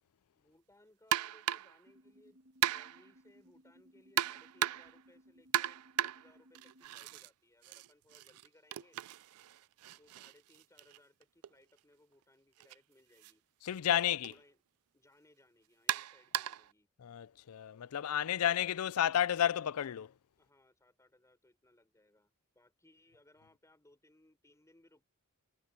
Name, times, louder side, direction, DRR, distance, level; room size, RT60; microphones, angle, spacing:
voice 1, 0.4-9.0 10.0-13.4 13.9-14.6 14.9-16.9 20.4-25.0, left 1 dB, 15° left, 4.5 m, -66 dB
sound 1, 1.1-1.8 2.6-3.1 4.2-5.0 5.5-7.3 7.6-11.5 12.6-12.8 13.2-13.3 14.2-14.4 15.9-16.7, right 12 dB, 80° right, 0.4 m, -36 dB
sound 2, 1.9-6.9, equal, 55° right, 2.0 m, -63 dB
voice 2, 13.6-14.3 17.0-20.1, left 10 dB, 75° left, 0.4 m, -31 dB
head